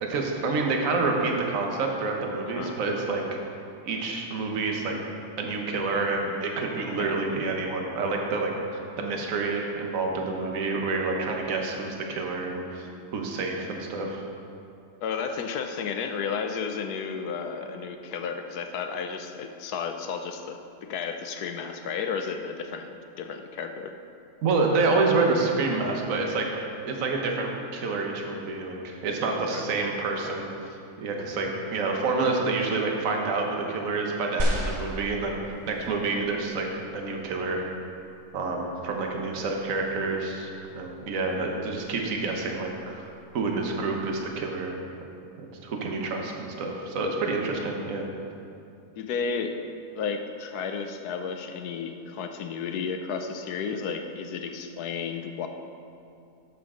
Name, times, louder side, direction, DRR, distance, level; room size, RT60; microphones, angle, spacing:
voice 1, 0.0-3.2 3.8-5.0 5.4-12.8 13.1-14.2 24.4-26.5 26.9-30.4 31.0-35.4 35.7-36.7 36.9-37.7 38.3-43.0 43.3-44.8 45.4-48.0, right 3 dB, 60° right, 1 dB, 1.3 m, -28 dB
voice 2, 2.5-2.8 7.0-7.2 15.0-24.0 29.5-29.6 30.2-30.3 49.0-49.6 50.0-55.5, left 6 dB, 75° left, 6 dB, 1.1 m, -33 dB
sound 1, 34.4-35.9 36.7-36.8, equal, 40° right, 1.0 m, -29 dB
11.0 x 7.3 x 3.7 m, 2.5 s
omnidirectional pair, 1.7 m